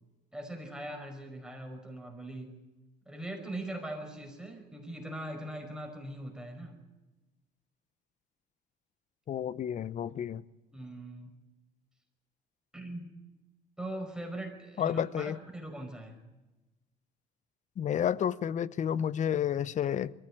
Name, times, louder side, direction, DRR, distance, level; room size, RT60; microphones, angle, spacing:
voice 1, 0.3-2.6 3.1-6.8 10.7-11.3 12.7-13.1 13.8-16.2, right 1 dB, 5° right, 3 dB, 5.4 m, -41 dB
voice 2, 9.3-10.4 14.8-15.4 17.8-20.1, left 9 dB, 45° left, 18 dB, 0.7 m, -31 dB
22.0 x 15.5 x 8.8 m, 1.1 s
cardioid pair, 110°, 17 cm